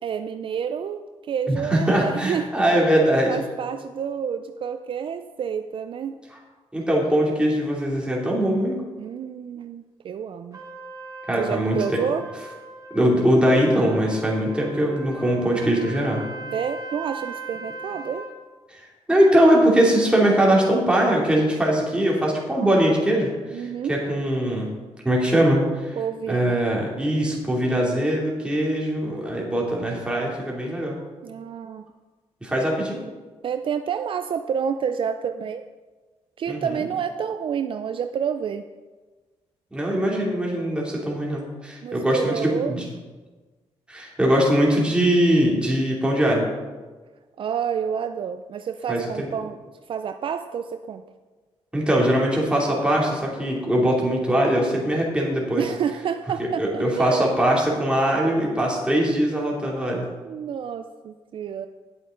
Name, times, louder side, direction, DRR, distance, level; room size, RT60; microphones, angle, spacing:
voice 1, 0.0-2.5 3.3-6.2 9.0-10.6 11.4-12.3 16.5-18.3 23.5-24.0 26.0-26.5 31.2-31.9 33.4-35.6 36.4-38.7 41.8-42.8 47.4-49.6 49.9-51.0 55.6-57.3 60.2-61.7, right 7 dB, 55° right, 8 dB, 0.4 m, -29 dB
voice 2, 1.5-3.4 6.7-8.7 11.3-12.0 12.9-16.3 18.7-18.8 19.1-24.7 25.0-26.0 26.3-31.0 32.4-33.0 36.5-36.8 39.7-42.8 43.9-46.5 48.9-49.3 51.7-55.6 56.6-60.1, right 1 dB, 10° right, -3 dB, 2.7 m, -21 dB
Trumpet, 10.5-18.3, right 2 dB, 35° right, 3.4 m, -39 dB
10.5 x 8.1 x 3.8 m, 1.3 s
cardioid pair, 95°, 10 cm